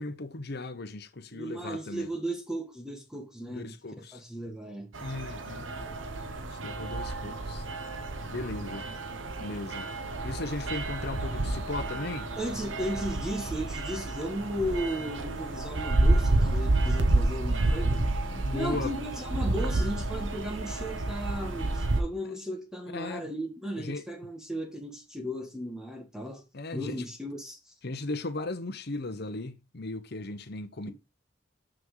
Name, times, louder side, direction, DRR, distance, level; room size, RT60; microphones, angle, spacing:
voice 1, 0.0-2.1 3.5-4.2 5.0-5.7 6.5-7.6 8.3-8.9 9.4-9.9 10.2-12.3 18.3-18.9 22.9-23.3 23.8-24.0 26.5-27.0 27.8-30.9, left 2 dB, 60° left, 1.0 m, -37 dB
voice 2, 1.3-3.7 4.1-4.9 12.4-18.0 18.5-26.4 26.7-27.7, equal, 5° right, 1.6 m, -35 dB
sound 1, 4.9-22.0, right 2 dB, 85° right, 1.1 m, -30 dB
6.1 x 6.1 x 4.8 m
head